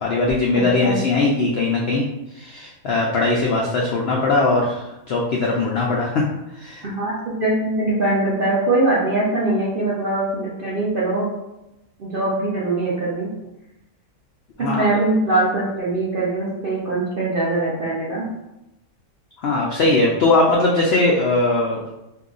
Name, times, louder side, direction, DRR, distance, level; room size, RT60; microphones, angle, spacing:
voice 1, 0.0-2.0 2.3-6.2 6.6-6.8 14.6-14.8 19.4-21.8, left 2 dB, 80° left, -2 dB, 0.5 m, -20 dB
voice 2, 0.5-1.0 6.8-7.1 7.4-11.4 12.0-13.3 14.6-18.2, right 2 dB, 60° right, -6 dB, 0.5 m, -22 dB
2.7 x 2.3 x 3.7 m, 0.92 s
omnidirectional pair, 1.6 m